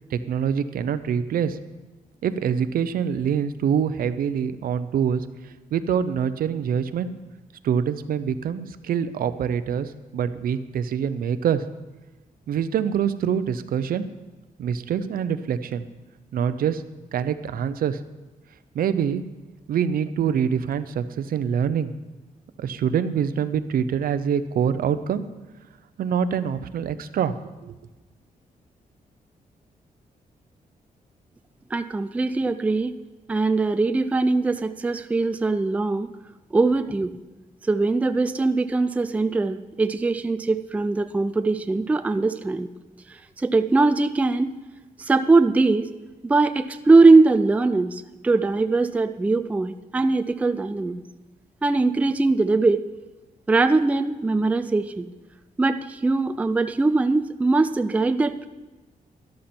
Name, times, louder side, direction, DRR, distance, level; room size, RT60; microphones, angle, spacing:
voice 1, 0.1-1.6 2.2-7.1 7.6-11.6 12.5-14.0 14.6-15.9 16.3-16.8 17.1-18.0 18.7-19.2 19.7-21.9 22.6-25.2 26.0-27.3 27.6-27.8, right 8 dB, 80° right, 13 dB, 0.6 m, -25 dB
voice 2, 31.7-33.0 33.3-36.1 36.5-37.2 37.7-42.7 43.1-44.5 45.0-45.9 46.2-51.0 51.6-52.8 53.5-55.1 55.6-58.5, right 3 dB, 10° right, 10 dB, 0.3 m, -21 dB
13.0 x 12.0 x 4.4 m, 1.2 s
wide cardioid pair, 170°, 15 cm